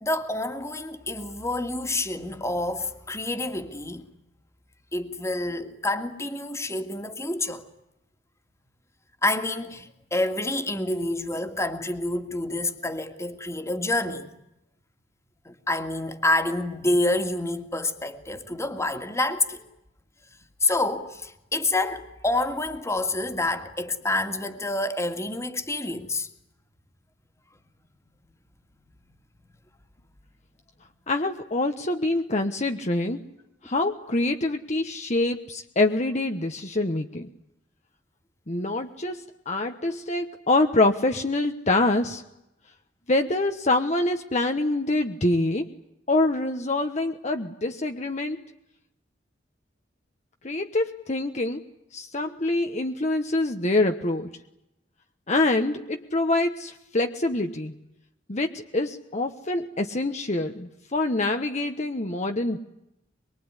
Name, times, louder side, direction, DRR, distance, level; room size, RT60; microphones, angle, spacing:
voice 1, 0.0-4.1 4.9-7.6 9.2-14.3 15.5-19.6 20.6-26.3, left 2 dB, 15° left, 2.2 m, -28 dB
voice 2, 31.1-33.2 33.6-37.3 38.5-42.2 43.1-45.7 46.1-48.4 50.4-51.6 51.9-54.3 55.3-57.7 58.3-62.6, left 2 dB, 40° left, 1.2 m, -25 dB
24.5 x 23.5 x 9.9 m
head